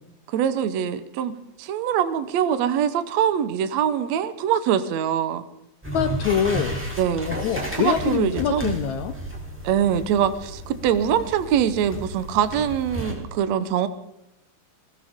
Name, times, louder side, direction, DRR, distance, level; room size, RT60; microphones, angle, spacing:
voice 1, 0.3-1.3 1.6-5.4 7.0-7.3 7.8-8.7 9.6-13.9, right 9 dB, 70° right, 11 dB, 1.7 m, -23 dB
sound 1, 5.8-13.1, right 1 dB, 5° right, 3.1 m, -33 dB
voice 2, 5.9-7.0 7.3-9.1, left 8 dB, 75° left, 8 dB, 1.8 m, -25 dB
21.5 x 18.0 x 3.6 m, 0.86 s
omnidirectional pair, 4.1 m